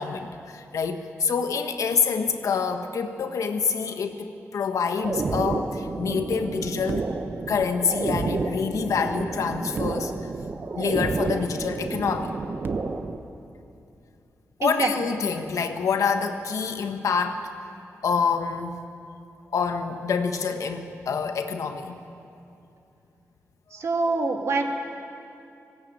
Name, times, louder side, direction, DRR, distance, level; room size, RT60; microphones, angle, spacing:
voice 1, 0.0-7.1 7.5-10.1 10.7-12.3 14.6-17.5 18.0-18.8 19.5-22.0, left 6 dB, 80° left, 6 dB, 1.4 m, -26 dB
sound 1, 5.0-13.2, right 3 dB, 40° right, 1.0 m, -30 dB
voice 2, 14.6-14.9 23.7-24.6, right 3 dB, 60° right, 3 dB, 2.0 m, -25 dB
19.5 x 16.5 x 8.7 m, 2.6 s
wide cardioid pair, 150°, 5 cm